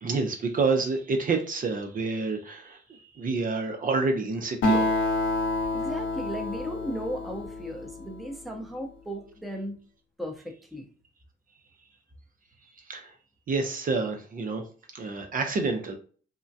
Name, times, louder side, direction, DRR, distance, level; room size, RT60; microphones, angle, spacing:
voice 1, 0.0-4.9 12.8-13.1 13.5-14.6 14.9-15.9, right 3 dB, 45° right, 4 dB, 0.6 m, -28 dB
Acoustic guitar, 4.6-8.4, left 2 dB, 70° left, 0.9 m, -28 dB
voice 2, 5.7-9.8 10.2-10.9, equal, ahead, 1 dB, 0.7 m, -36 dB
3.6 x 2.1 x 2.7 m, 0.41 s
cardioid pair, 90°, 20 cm